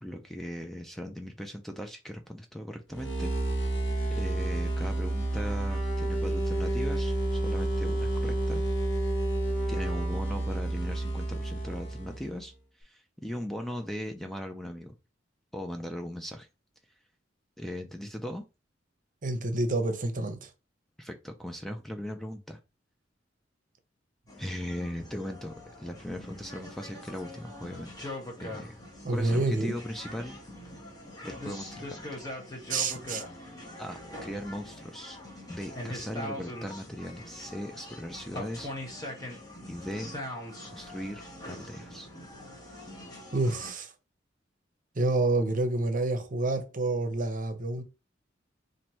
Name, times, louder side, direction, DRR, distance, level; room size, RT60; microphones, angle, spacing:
voice 1, 0.0-3.3 4.1-8.6 9.7-15.0 15.5-16.5 17.6-18.4 21.0-22.6 24.4-28.1 28.4-28.8 29.1-30.4 31.2-32.2 33.8-35.2 35.5-38.7 39.7-40.1 40.6-42.1, equal, ahead, 0.3 m, -38 dB
sound 1, 2.9-12.4, right 1 dB, 75° left, 1.0 m, -30 dB
voice 2, 19.2-20.5 29.0-29.7 32.7-33.2 43.3-43.9 45.0-47.8, right 2 dB, 45° right, 0.7 m, -28 dB
sound 2, 24.3-43.7, left 1 dB, 20° left, 1.1 m, -42 dB
3.0 x 2.6 x 4.3 m
head